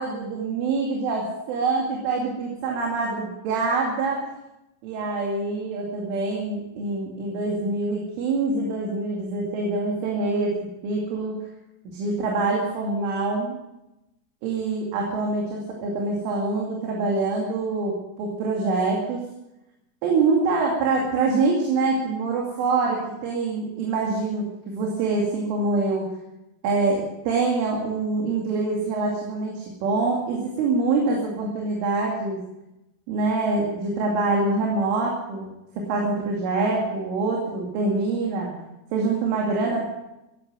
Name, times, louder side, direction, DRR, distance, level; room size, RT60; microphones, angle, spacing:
voice 1, 0.0-4.3 4.8-10.5 10.8-11.4 11.9-13.6 14.4-19.2 20.0-26.1 26.6-32.4 33.1-35.5 35.8-38.5 38.9-39.9, right 3 dB, 75° right, -2 dB, 4.9 m, -25 dB
15.0 x 11.5 x 7.7 m, 0.92 s
omnidirectional pair, 5.7 m